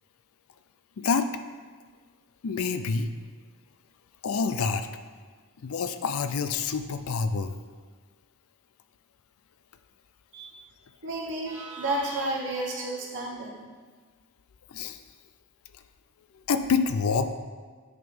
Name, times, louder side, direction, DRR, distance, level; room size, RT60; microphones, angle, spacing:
voice 1, 1.0-1.3 2.4-3.1 4.2-4.9 5.6-7.5 14.7-15.0 16.5-17.3, left 5 dB, 65° left, 10 dB, 0.4 m, -27 dB
voice 2, 11.0-13.7, right 2 dB, 55° right, -3 dB, 1.2 m, -31 dB
9.5 x 3.9 x 5.3 m, 1.5 s
head